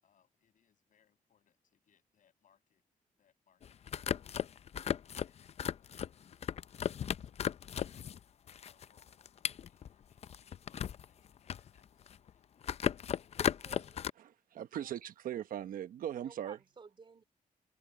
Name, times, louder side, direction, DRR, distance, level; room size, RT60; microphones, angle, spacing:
voice 1, 0.0-2.8 3.2-4.6 5.0-7.4 7.8-12.5, left 9 dB, 70° left, 7.1 m, -74 dB
sound 1, 3.6-8.2 8.5-11.0 11.4-12.3 12.6-14.1, left 9 dB, 50° left, 0.5 m, -36 dB
voice 2, 13.6-14.0 16.2-17.2, right 5 dB, 35° right, 3.3 m, -55 dB
voice 3, 14.2-16.6, right 10 dB, 90° right, 1.1 m, -40 dB
cardioid pair, 120°, 14 cm